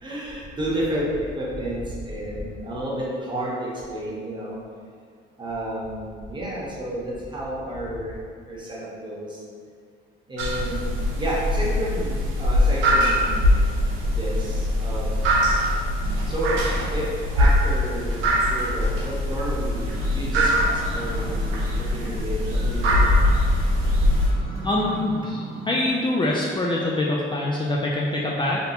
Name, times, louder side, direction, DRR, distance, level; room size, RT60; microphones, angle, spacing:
voice 1, 0.0-4.6 5.4-8.1 8.5-9.4 10.3-10.8 11.2-15.4 16.3-16.6 16.9-17.1 17.3-23.5, right 1 dB, 25° right, -6 dB, 0.9 m, -31 dB
sound 1, 10.4-24.3, left 1 dB, 80° right, 0.7 m, -22 dB
sound 2, 19.8-25.9, right 1 dB, 55° right, 0.9 m, -38 dB
voice 2, 24.6-28.6, left 1 dB, 25° left, -4 dB, 0.3 m, -24 dB
2.8 x 2.1 x 4.1 m, 2.1 s
cardioid pair, 90°, 20 cm